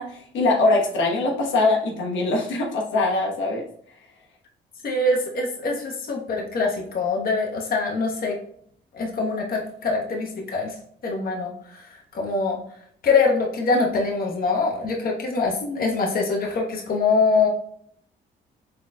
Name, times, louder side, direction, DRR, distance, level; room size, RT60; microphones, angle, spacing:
voice 1, 0.0-3.6 15.6-16.0, left 2 dB, 75° left, -2 dB, 1.1 m, -23 dB
voice 2, 4.8-8.4 8.9-10.7 11.0-12.6 13.0-17.5, left 3 dB, 50° left, -1 dB, 1.0 m, -24 dB
3.9 x 3.9 x 2.2 m, 0.62 s
cardioid pair, 90°, 20 cm